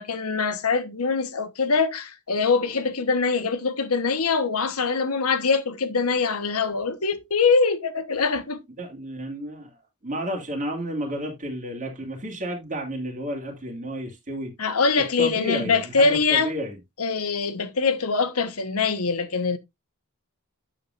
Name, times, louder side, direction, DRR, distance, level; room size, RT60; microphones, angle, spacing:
voice 1, 0.0-8.6 14.6-16.5 17.0-19.6, left 4 dB, 80° left, 1.2 m, -23 dB
voice 2, 8.8-14.5 15.2-16.8, equal, 35° right, 2.2 m, -32 dB
9.3 x 7.4 x 2.5 m
head